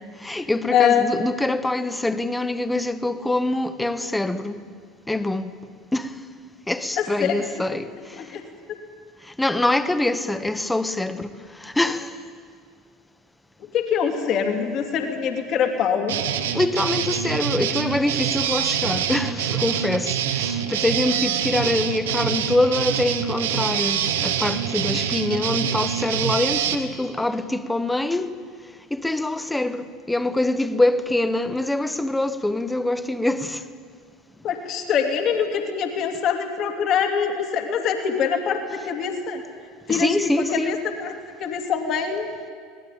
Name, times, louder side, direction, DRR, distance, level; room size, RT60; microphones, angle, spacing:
voice 1, 0.2-4.6 5.1-5.5 5.9-6.2 6.7-8.3 9.2-12.2 16.5-28.3 28.9-33.6 39.9-40.8, left 2 dB, 10° left, 1.3 m, -24 dB
voice 2, 0.7-1.1 7.0-7.8 8.1-8.4 13.7-16.1 34.4-39.4 39.9-40.2 40.5-41.1 41.4-42.3, left 7 dB, 45° left, 2.8 m, -24 dB
sound 1, 16.1-26.8, right 9 dB, 65° right, 1.7 m, -25 dB
23.5 x 19.0 x 9.0 m
figure-of-eight pair, 70°, 0 cm